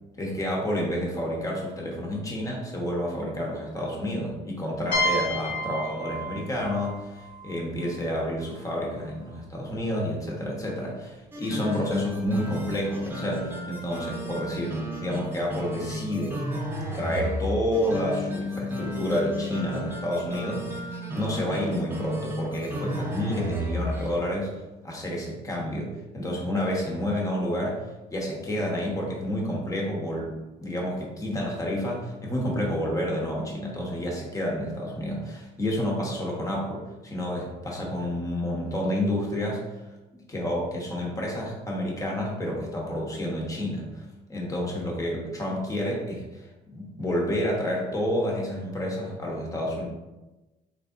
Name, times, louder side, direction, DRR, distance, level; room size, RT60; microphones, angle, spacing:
voice 1, 0.1-16.4 16.9-24.6 24.8-27.8 28.1-30.3 30.6-39.6 40.1-49.8, left 1 dB, 20° left, -2 dB, 0.9 m, -29 dB
sound 1, 4.9-8.5, equal, 55° left, 1.2 m, -31 dB
sound 2, 11.3-24.1, equal, 15° right, 0.6 m, -33 dB
3.7 x 3.2 x 2.5 m, 1.1 s
cardioid pair, 110°, 17 cm